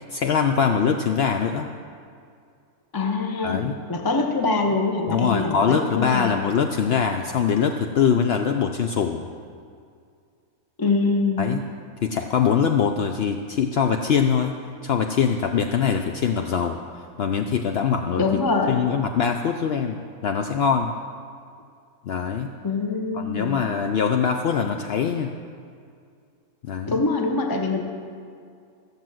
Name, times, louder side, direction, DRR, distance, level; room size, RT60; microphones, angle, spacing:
voice 1, 0.1-1.7 3.4-3.8 5.1-9.2 11.4-11.6 12.0-14.6 14.8-18.3 18.7-20.9 22.0-22.5 23.1-25.3 26.6-27.0, left 7 dB, 65° left, 5 dB, 0.6 m, -23 dB
voice 2, 2.9-6.3 10.8-11.5 18.2-18.9 22.6-23.6 26.9-27.8, left 3 dB, 20° left, 4 dB, 0.7 m, -24 dB
14.5 x 7.3 x 7.6 m, 2.3 s
omnidirectional pair, 1.6 m